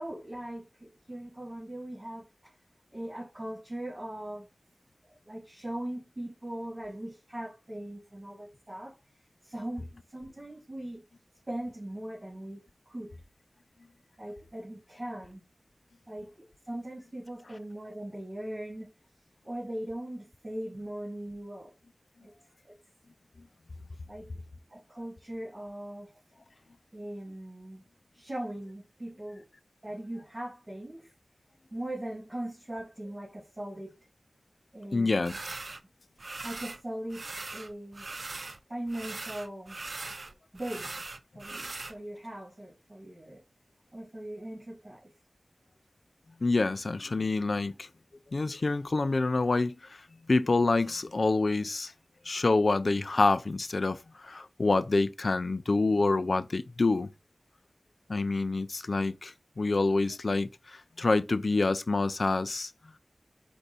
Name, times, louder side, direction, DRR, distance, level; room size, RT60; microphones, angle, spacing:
voice 1, 0.0-2.2 2.9-4.5 5.3-8.9 9.4-11.0 11.5-13.1 14.2-15.4 16.1-18.9 19.4-21.7 22.2-22.3 22.7-22.8 24.1-24.3 24.7-26.1 26.9-27.8 28.1-29.4 29.8-31.1 31.7-33.9 34.7-35.4 36.4-38.1 38.7-39.8 40.5-40.9 41.3-43.4 43.9-45.1, right 1 dB, 35° right, 2.3 m, -40 dB
voice 2, 34.9-35.3 46.4-47.9 48.3-50.0 50.3-51.9 52.3-57.1 58.1-62.7, left 3 dB, 65° left, 0.4 m, -27 dB
sound 1, 35.2-35.8 36.2-36.8 37.1-38.6 38.9-41.9, right 3 dB, 65° right, 0.4 m, -40 dB
4.6 x 2.6 x 4.1 m
wide cardioid pair, 55°, 0 cm